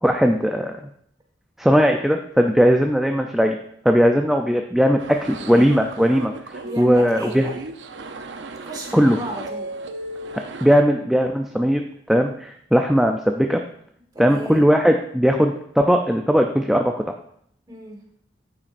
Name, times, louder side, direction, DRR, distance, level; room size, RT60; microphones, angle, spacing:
voice 1, 0.0-0.8 1.6-3.6 3.8-7.5 8.9-9.2 10.3-11.8 12.1-13.6 14.2-17.1, equal, ahead, 3 dB, 0.5 m, -18 dB
sound 1, 5.0-10.8, right 2 dB, 70° right, 0.7 m, -35 dB
voice 2, 6.6-7.6 8.6-9.7 14.1-14.6 17.7-18.0, right 1 dB, 20° right, 1 dB, 1.7 m, -33 dB
10.5 x 8.9 x 2.6 m, 0.68 s
head